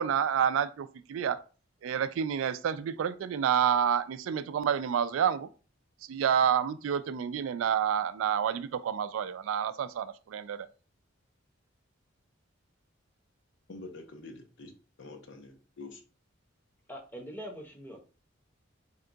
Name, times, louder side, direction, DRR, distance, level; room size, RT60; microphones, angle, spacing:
voice 1, 0.0-1.4 1.8-5.5 6.1-10.7, right 8 dB, 80° right, 0.3 m, -29 dB
voice 2, 13.7-14.7 15.0-16.0, left 3 dB, 65° left, 0.6 m, -46 dB
voice 3, 16.9-18.0, equal, 10° left, 0.7 m, -42 dB
3.5 x 2.2 x 3.8 m
head